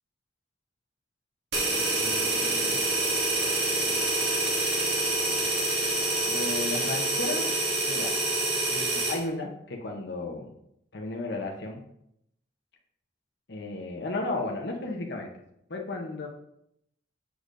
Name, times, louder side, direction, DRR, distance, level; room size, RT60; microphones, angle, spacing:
sound 1, 1.5-9.2, right 2 dB, 60° right, 2.0 m, -27 dB
voice 1, 2.0-2.8 6.2-7.5 7.8-8.1 8.7-10.5 10.9-11.8 13.5-15.3 15.7-16.3, left 2 dB, 65° left, 1 dB, 0.9 m, -34 dB
6.7 x 6.4 x 2.6 m, 0.77 s
head